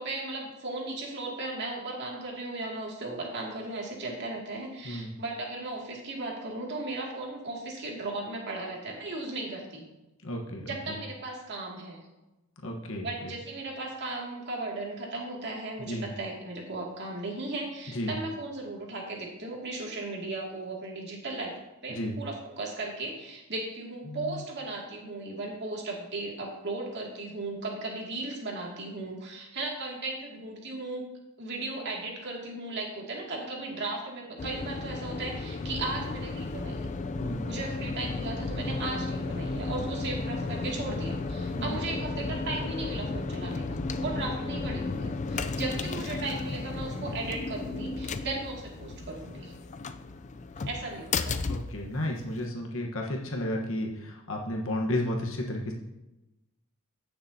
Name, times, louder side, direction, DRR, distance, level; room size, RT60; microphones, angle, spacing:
voice 1, 0.0-9.8 10.7-12.1 13.0-21.5 21.8-31.0 31.4-36.9 37.4-49.5 50.6-51.5, right 2 dB, 55° right, -2 dB, 2.3 m, -36 dB
voice 2, 10.2-10.9 12.6-13.3 15.8-16.0 17.9-18.1 21.9-22.1 24.1-24.4 37.2-37.5 41.5-41.7 51.5-55.7, left 1 dB, 65° left, 0 dB, 1.2 m, -33 dB
sound 1, 34.4-52.5, left 3 dB, 35° left, 0.4 m, -34 dB
15.5 x 6.9 x 2.8 m, 0.99 s
head